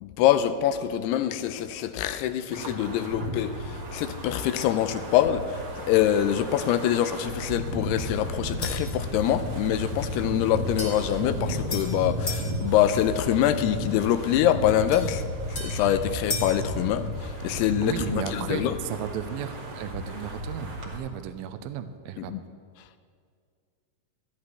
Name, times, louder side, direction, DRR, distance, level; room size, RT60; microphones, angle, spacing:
voice 1, 0.0-3.6 3.9-5.6 5.9-15.2 15.5-18.8 22.3-22.4, left 11 dB, 85° left, 10 dB, 2.6 m, -25 dB
Wind, 2.5-21.0, equal, 50° right, 1.7 m, -33 dB
sound 1, 8.6-9.0 10.8-12.5 14.9-16.6, left 3 dB, 35° left, 1.0 m, -36 dB
voice 2, 17.8-22.4, right 9 dB, 80° right, 10 dB, 2.2 m, -34 dB
19.0 x 13.5 x 3.3 m, 2.2 s
omnidirectional pair, 4.6 m